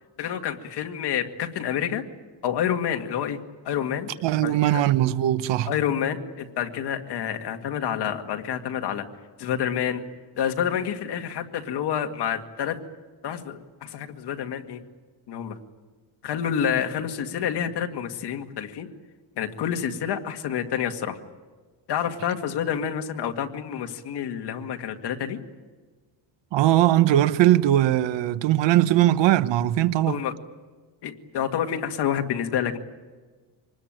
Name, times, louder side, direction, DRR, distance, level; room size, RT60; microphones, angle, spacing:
voice 1, 0.2-2.0 2.4-3.4 3.6-4.1 4.4-4.8 5.6-9.1 9.4-10.0 10.4-12.8 13.2-14.8 15.3-15.6 16.2-18.9 19.4-21.2 21.9-25.4 30.1-30.3 31.0-32.8, left 9 dB, 60° left, 2.1 m, -28 dB
voice 2, 4.2-5.7 26.5-30.2, right 13 dB, 70° right, 1.1 m, -20 dB
26.0 x 20.0 x 9.0 m
cardioid pair, 135°, 45 cm